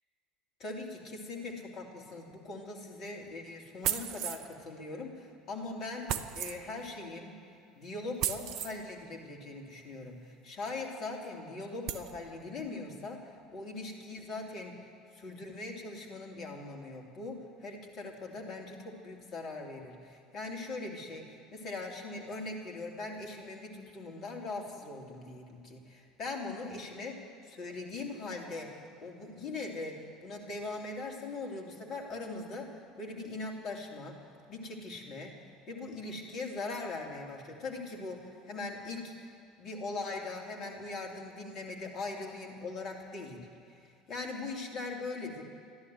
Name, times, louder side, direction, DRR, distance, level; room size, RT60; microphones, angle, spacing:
voice 1, 0.6-6.1 6.3-7.4 7.7-13.2 13.5-14.7 15.1-34.2 34.5-35.3 35.7-39.3 39.6-43.4 43.8-45.4, left 3 dB, 45° left, 0 dB, 2.8 m, -41 dB
sound 1, 3.8-4.5 6.1-6.6 8.2-8.8 10.7-10.8 11.2-11.3 11.9-12.1, right 10 dB, 55° right, 0.7 m, -34 dB
14.5 x 11.5 x 7.8 m, 2.5 s
figure-of-eight pair, 65°, 0 cm